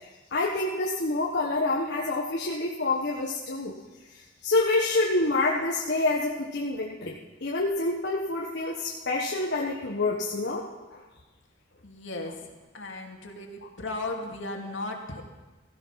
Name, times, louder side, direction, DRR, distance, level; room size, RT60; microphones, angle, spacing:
voice 1, 0.0-3.7 4.1-11.0, left 2 dB, 60° left, -2 dB, 1.3 m, -27 dB
voice 2, 11.8-12.4 12.7-15.2, left 2 dB, 75° left, 2 dB, 2.4 m, -36 dB
15.5 x 15.5 x 5.8 m, 1.2 s
head